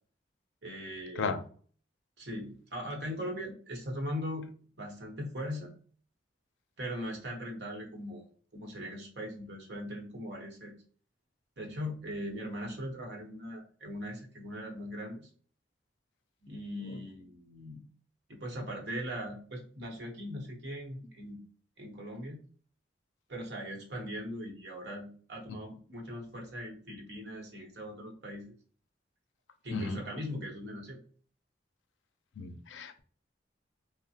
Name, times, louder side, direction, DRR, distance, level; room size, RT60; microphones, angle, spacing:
voice 1, 0.6-1.4 2.2-4.5 4.8-5.7 6.8-10.7 11.6-15.3 16.4-17.8 18.3-21.4 21.8-22.4 23.3-28.5 29.6-31.0, equal, 65° right, 0 dB, 0.9 m, -40 dB
voice 2, 32.4-33.0, left 4 dB, 85° left, 8 dB, 0.4 m, -35 dB
3.1 x 2.0 x 2.7 m, 0.43 s
head